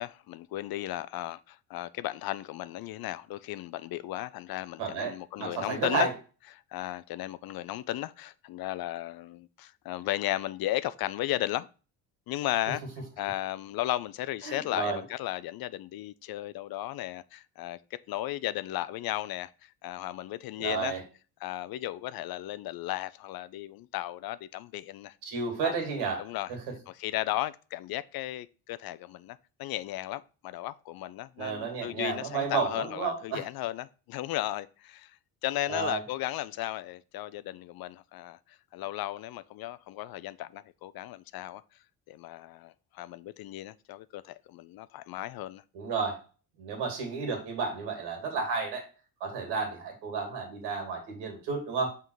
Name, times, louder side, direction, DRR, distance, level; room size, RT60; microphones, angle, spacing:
voice 1, 0.0-6.1 6.5-11.7 12.3-12.8 13.2-17.8 18.1-21.0 21.4-25.1 25.6-25.8 26.2-26.5 26.9-35.1 35.4-41.6 42.1-45.6, left 15 dB, 60° left, 0.5 m, -35 dB
voice 2, 4.8-6.1 14.4-15.0 20.6-21.0 25.2-26.6 31.4-33.4 35.7-36.0 45.7-46.2 46.6-48.8 49.2-52.0, right 5 dB, 85° right, 2.4 m, -32 dB
5.6 x 3.8 x 4.7 m
cardioid pair, 90°, 40 cm